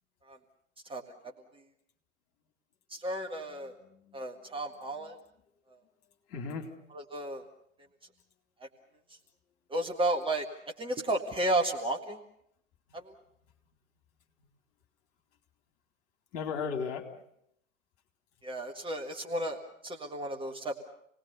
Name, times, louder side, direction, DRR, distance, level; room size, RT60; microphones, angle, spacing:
voice 1, 2.9-3.7 4.1-5.1 7.1-7.4 9.7-10.4 10.8-12.2 12.9-13.0 18.4-20.9, right 1 dB, 15° right, 2 dB, 1.8 m, -32 dB
voice 2, 3.6-4.7 5.0-5.1 6.3-6.7 16.3-17.1, left 5 dB, 40° left, 3 dB, 3.8 m, -37 dB
28.5 x 19.5 x 6.9 m, 0.74 s
figure-of-eight pair, 100°, 40 cm